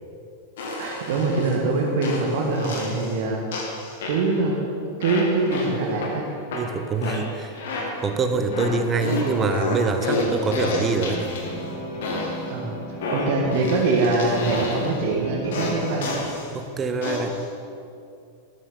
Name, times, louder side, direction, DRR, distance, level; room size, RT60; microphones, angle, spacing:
sound 1, 0.6-1.5 2.0-3.2 3.5-4.5 5.0-6.1 6.5-8.1 8.5-11.6 12.0-12.5 13.0-15.0 15.5-16.5 17.0-17.4, left 3 dB, 55° left, 2.1 m, -30 dB
voice 1, 0.8-3.4 4.1-4.6 5.0-6.3 12.5-12.8 13.1-16.2, right 3 dB, 50° right, 0 dB, 1.7 m, -23 dB
voice 2, 6.5-7.6 8.0-11.3 16.5-17.4, right 4 dB, 20° right, 7 dB, 0.9 m, -25 dB
sound 2, 8.3-16.0, right 1 dB, 35° left, 3.2 m, -35 dB
12.5 x 12.5 x 3.9 m, 2.5 s
figure-of-eight pair, 90°, 0 cm